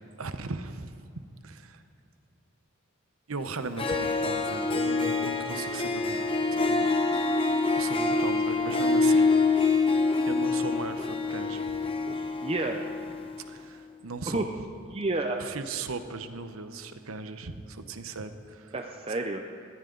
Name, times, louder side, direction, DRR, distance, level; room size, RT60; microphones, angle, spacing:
voice 1, 0.2-0.9 1.4-1.8 3.3-6.2 6.6-7.0 7.8-9.3 10.3-11.8 13.4-14.5 15.4-18.7, right 3 dB, 75° right, 9 dB, 0.9 m, -38 dB
Harp, 3.5-3.6 3.8-13.3, left 3 dB, 25° left, 0.8 m, -26 dB
voice 2, 12.1-12.9 14.3-14.4 14.9-15.5 18.7-19.4, right 2 dB, 25° right, 3 dB, 0.6 m, -31 dB
20.5 x 15.5 x 3.9 m, 2.6 s
head